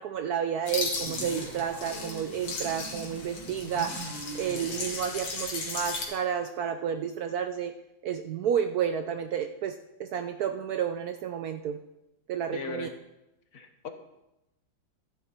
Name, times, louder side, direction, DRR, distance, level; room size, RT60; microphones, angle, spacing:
voice 1, 0.0-4.0 4.3-7.7 8.0-11.8 12.3-12.9, right 8 dB, 75° right, 8 dB, 0.8 m, -31 dB
sound 1, 0.7-6.1, left 3 dB, 85° left, 2.9 m, -36 dB
sound 2, 1.0-5.0, right 2 dB, 40° right, 1.6 m, -42 dB
voice 2, 12.5-12.9 13.5-13.9, left 4 dB, 50° left, 6 dB, 1.3 m, -37 dB
13.5 x 11.0 x 4.4 m, 0.92 s
omnidirectional pair, 2.2 m